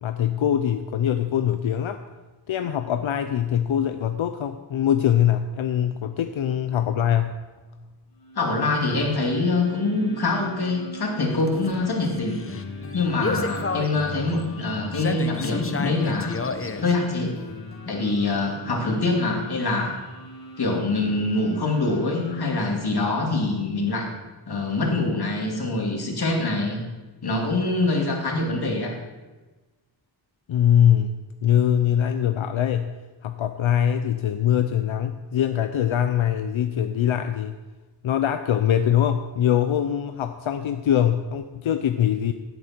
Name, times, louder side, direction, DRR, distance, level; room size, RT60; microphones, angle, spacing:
voice 1, 0.0-2.0 2.5-7.4 30.5-32.9 33.2-37.6 38.0-42.3, left 10 dB, 85° left, 8 dB, 0.7 m, -23 dB
sound 1, 8.1-22.4, right 1 dB, 70° left, 3.6 m, -44 dB
voice 2, 8.4-12.4 12.9-16.4 16.8-17.4 17.9-19.9 20.6-24.1 24.5-26.8 27.2-28.9, left 2 dB, 55° left, 0 dB, 2.7 m, -24 dB
sound 2, 11.2-18.1, left 4 dB, 30° left, 0.8 m, -32 dB
17.0 x 8.8 x 4.5 m, 1.2 s
wide cardioid pair, 120°, 46 cm